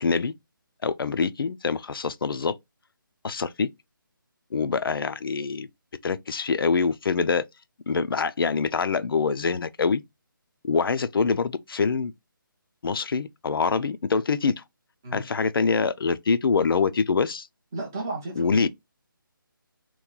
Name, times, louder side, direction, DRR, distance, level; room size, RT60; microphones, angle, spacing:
voice 1, 0.0-0.3 0.8-2.6 3.2-3.7 4.5-5.7 6.0-7.4 7.9-10.0 10.6-12.1 12.8-14.6 15.1-17.5 18.4-18.7, left 5 dB, 80° left, 0.4 m, -25 dB
voice 2, 17.7-18.7, right 2 dB, 10° right, 0.3 m, -34 dB
3.0 x 2.3 x 3.6 m
hypercardioid pair, 170°, 12 cm